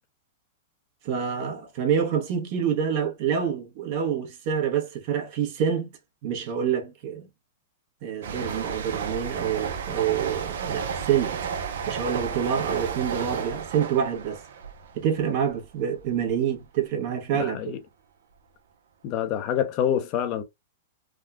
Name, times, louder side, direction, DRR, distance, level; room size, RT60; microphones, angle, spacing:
voice 1, 1.0-5.9 6.2-7.3 8.0-11.4 11.9-14.4 14.9-17.6, right 8 dB, 55° right, 1.2 m, -27 dB
sound 1, 8.2-15.7 16.0-16.3, right 7 dB, 75° right, 0.8 m, -32 dB
voice 2, 17.3-17.8 19.0-20.4, left 9 dB, 45° left, 0.6 m, -26 dB
3.6 x 2.3 x 2.3 m
hypercardioid pair, 120°, 0 cm